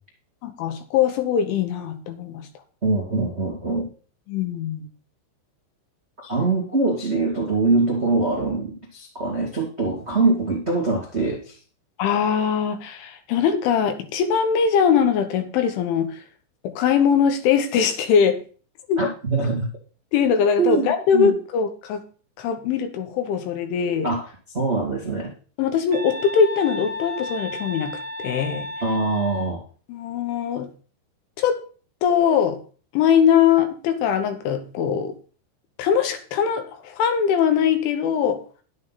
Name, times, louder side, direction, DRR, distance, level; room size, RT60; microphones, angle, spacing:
voice 1, 0.4-2.5 4.3-4.9 12.0-16.2 16.6-18.4 18.9-19.0 20.1-22.0 22.4-24.1 25.6-28.7 29.9-30.7 31.4-31.6 32.0-32.6 32.9-35.1 35.8-38.4, left 7 dB, 80° left, 8 dB, 3.7 m, -21 dB
voice 2, 2.8-3.9 6.2-11.6 19.0-19.7 20.6-21.3 24.0-25.3 28.8-29.6, right 3 dB, 75° right, -3 dB, 0.6 m, -23 dB
sound 1, 25.9-29.5, left 2 dB, 40° right, 1.2 m, -33 dB
11.0 x 9.4 x 4.1 m, 0.39 s
omnidirectional pair, 5.4 m